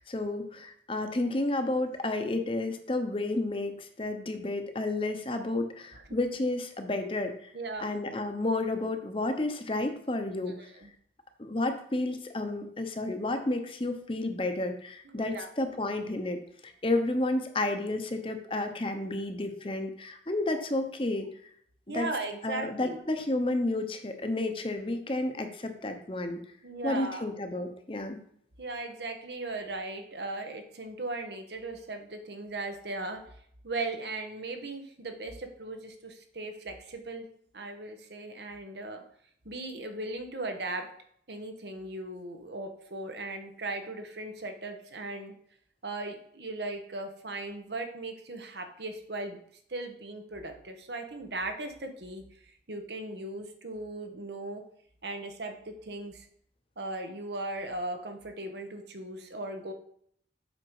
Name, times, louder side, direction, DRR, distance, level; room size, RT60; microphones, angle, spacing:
voice 1, 0.0-7.5 7.8-10.6 11.4-21.3 21.9-22.1 22.4-26.4 26.8-28.2, left 2 dB, 30° left, 6 dB, 0.8 m, -31 dB
voice 2, 7.5-8.0 10.4-10.9 15.0-15.5 20.5-20.6 21.9-23.0 26.6-27.3 28.6-33.2 33.6-37.3 37.5-39.0 39.4-40.9 41.3-45.3 45.8-49.4 49.7-54.6 55.0-56.3 56.8-59.7, right 2 dB, 75° right, 5 dB, 1.2 m, -38 dB
7.9 x 5.2 x 4.8 m, 0.65 s
head